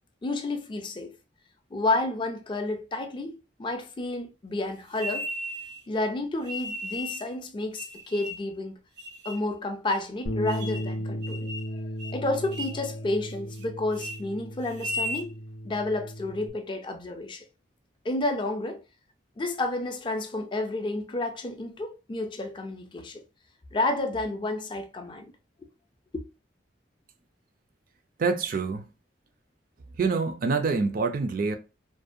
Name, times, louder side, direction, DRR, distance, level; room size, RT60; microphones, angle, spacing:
voice 1, 0.2-1.2 1.7-5.3 5.9-8.8 9.3-11.5 12.1-15.4 15.6-17.5 18.0-18.8 19.4-23.2 23.7-25.3, left 2 dB, 25° left, 0.4 m, -30 dB
sound 1, 5.0-5.8 6.4-7.3 7.7-8.5 9.0-9.5 9.9-10.0 10.5-10.9 11.2-11.7 12.0-12.2 12.5-12.8 13.2-13.6 13.9-14.2 14.7-15.3, equal, 75° right, 0.7 m, -36 dB
Bass guitar, 10.3-16.5, equal, 90° left, 0.5 m, -36 dB
voice 2, 28.2-28.9 30.0-31.6, right 4 dB, 50° right, 0.3 m, -26 dB
2.5 x 2.1 x 2.5 m
head